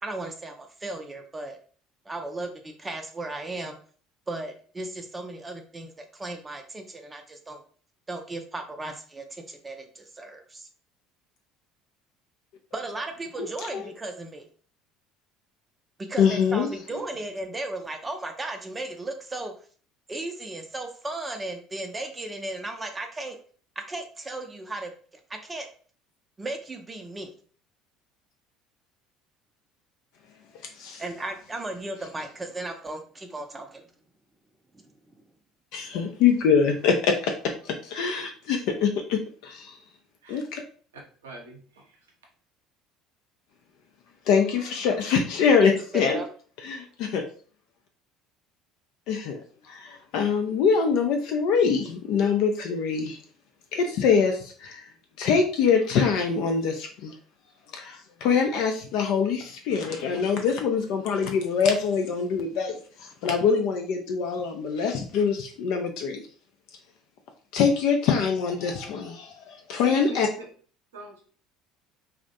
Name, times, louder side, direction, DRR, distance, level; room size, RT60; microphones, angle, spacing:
voice 1, 0.0-1.6 2.1-3.8 4.3-7.6 8.1-10.7 12.7-14.5 16.0-19.5 20.1-23.4 23.8-24.9 25.3-25.7 26.4-27.3 31.0-33.8 34.7-34.8 45.6-46.3, right 2 dB, 20° right, 5 dB, 0.4 m, -35 dB
voice 2, 13.4-13.9 16.2-16.7 30.8-31.0 35.7-37.3 37.6-39.8 40.3-40.6 44.3-46.2 46.6-47.2 49.1-49.4 49.7-53.2 53.7-54.8 55.2-57.1 57.7-66.2 67.5-70.3, left 6 dB, 60° left, 4 dB, 0.3 m, -24 dB
voice 3, 41.2-42.0 69.7-70.5 70.9-71.2, right 2 dB, 80° right, 1 dB, 0.6 m, -42 dB
2.4 x 2.0 x 2.7 m, 0.43 s
figure-of-eight pair, 60°, 0 cm